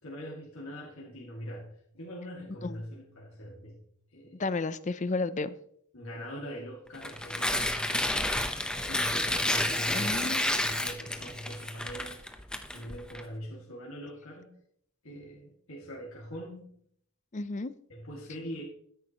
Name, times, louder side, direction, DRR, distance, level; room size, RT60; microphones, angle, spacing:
voice 1, 0.0-3.8 4.1-4.4 5.9-8.4 8.7-12.2 12.7-14.5 15.0-16.8 17.9-18.6, equal, 75° left, 2.2 m, -42 dB
voice 2, 4.4-5.5 9.9-10.5 17.3-17.7, left 3 dB, 35° left, 0.5 m, -32 dB
Tearing, 6.9-13.2, left 1 dB, 5° left, 0.8 m, -30 dB
13.0 x 10.5 x 3.0 m
head